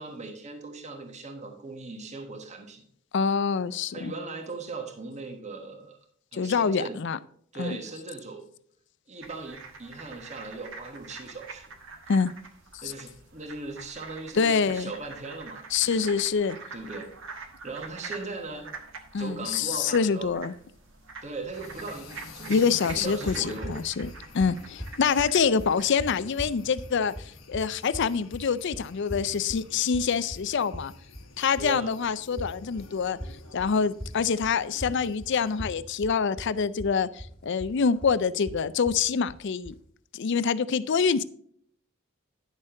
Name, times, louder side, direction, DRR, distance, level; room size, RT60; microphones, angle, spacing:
voice 1, 0.0-2.8 3.9-6.0 6.3-7.0 7.5-8.5 9.1-11.7 12.8-16.1 16.7-17.1 17.6-18.7 19.2-20.3 21.2-23.8 31.6-31.9, right 3 dB, 35° right, 4 dB, 1.3 m, -39 dB
voice 2, 3.1-4.1 6.3-7.2 7.6-7.8 12.1-12.3 12.8-12.9 14.3-14.9 15.7-16.6 19.1-20.5 22.5-24.1 24.3-27.1 27.5-30.9 31.4-33.2 33.5-39.7 40.1-41.2, left 6 dB, 60° left, 16 dB, 0.4 m, -26 dB
sound 1, 9.2-25.9, right 4 dB, 65° right, 1.3 m, -45 dB
sound 2, 21.5-35.6, left 3 dB, 85° left, 1.3 m, -50 dB
sound 3, 22.9-39.9, equal, 5° left, 1.9 m, -41 dB
10.5 x 6.4 x 3.8 m, 0.63 s
head